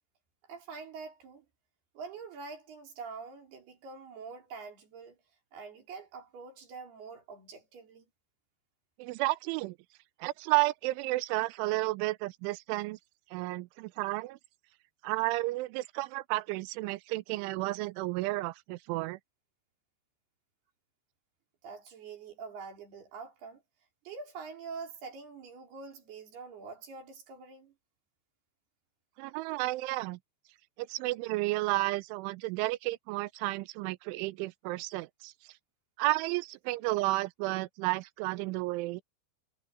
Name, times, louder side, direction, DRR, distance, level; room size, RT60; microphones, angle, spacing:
voice 1, 0.5-1.5 1.9-5.2 5.5-8.1 21.6-23.6 24.1-27.7, right 5 dB, 60° right, 6.0 m, -45 dB
voice 2, 9.0-9.8 10.2-13.0 13.3-14.4 15.0-19.2 29.2-30.2 30.8-35.3 36.0-39.0, right 20 dB, 90° right, 3.1 m, -32 dB
omnidirectional pair, 5.4 m